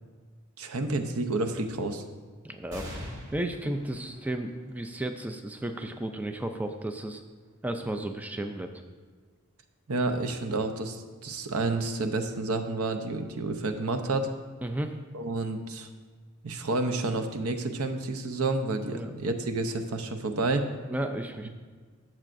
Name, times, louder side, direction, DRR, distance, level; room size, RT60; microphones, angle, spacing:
voice 1, 0.6-2.0 9.9-14.3 15.1-15.9 16.4-20.7, right 2 dB, 80° right, 7 dB, 0.7 m, -30 dB
voice 2, 2.4-2.9 3.3-7.2 7.6-8.7 14.6-15.0 18.9-19.1 20.9-21.5, right 1 dB, 5° right, 6 dB, 0.3 m, -33 dB
sound 1, 2.7-9.6 10.2-10.3 11.4-12.0, equal, 55° right, 2.1 m, -47 dB
12.0 x 7.5 x 2.6 m, 1.5 s
head